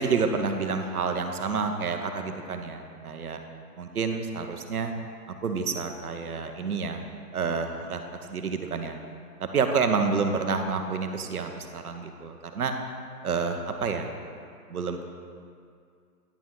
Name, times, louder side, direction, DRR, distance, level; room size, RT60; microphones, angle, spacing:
voice 1, 0.0-3.4 3.8-4.9 5.3-7.0 7.3-8.0 8.3-9.0 9.5-12.7 13.2-14.1 14.7-15.0, right 5 dB, 65° right, 5 dB, 0.8 m, -29 dB
9.8 x 5.2 x 3.7 m, 2.3 s
hypercardioid pair, 180°, 48 cm